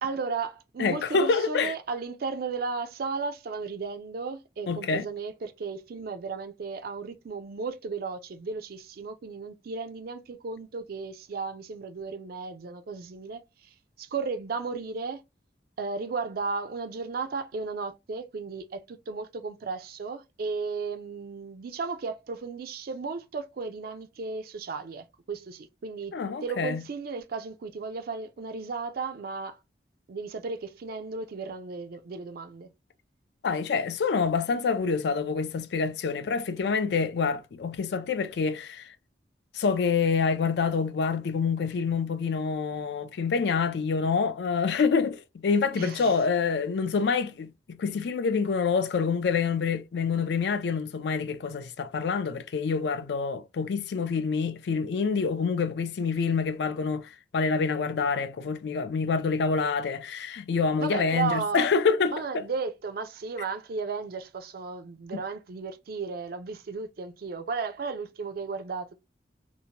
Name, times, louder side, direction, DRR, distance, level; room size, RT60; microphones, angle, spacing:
voice 1, 0.0-13.4 14.0-15.2 15.8-26.2 26.4-29.6 30.1-32.7 45.7-46.2 60.8-61.7 62.1-68.9, right 4 dB, 60° right, 0.4 m, -34 dB
voice 2, 0.8-1.7 4.7-5.1 26.1-26.8 33.4-38.8 39.5-62.1 65.1-65.2, left 5 dB, 65° left, 0.4 m, -27 dB
2.7 x 2.1 x 2.8 m
head